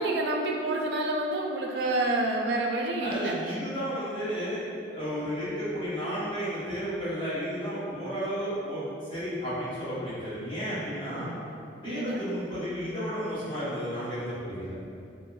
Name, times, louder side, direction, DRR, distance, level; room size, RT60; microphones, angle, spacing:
voice 1, 0.0-3.6 11.2-11.5 11.8-12.2, right 2 dB, 60° right, 0 dB, 0.3 m, -29 dB
voice 2, 3.0-4.6 4.9-11.3 11.8-14.7, equal, 25° left, -13 dB, 0.9 m, -33 dB
3.1 x 2.0 x 2.2 m, 2.4 s
head